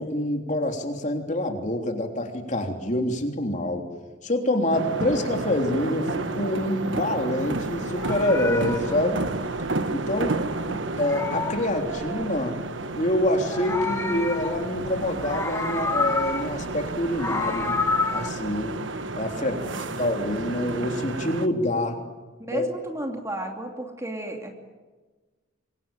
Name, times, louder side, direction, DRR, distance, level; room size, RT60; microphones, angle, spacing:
voice 1, 0.0-3.9 4.2-9.2 9.9-10.4 10.7-12.6 12.9-17.8 18.1-18.8 19.1-19.6 19.9-22.0 22.5-22.7, left 1 dB, 35° left, 3 dB, 3.4 m, -26 dB
sound 1, 4.7-21.5, right 2 dB, 70° right, 1.4 m, -31 dB
Meow, 7.8-10.4 10.7-12.4 13.2-14.9 15.2-16.6 17.0-18.3, left 4 dB, 15° left, 1.3 m, -30 dB
voice 2, 19.5-19.9 22.4-24.6, right 1 dB, 15° right, 3 dB, 2.8 m, -33 dB
26.5 x 22.5 x 9.0 m, 1.3 s
head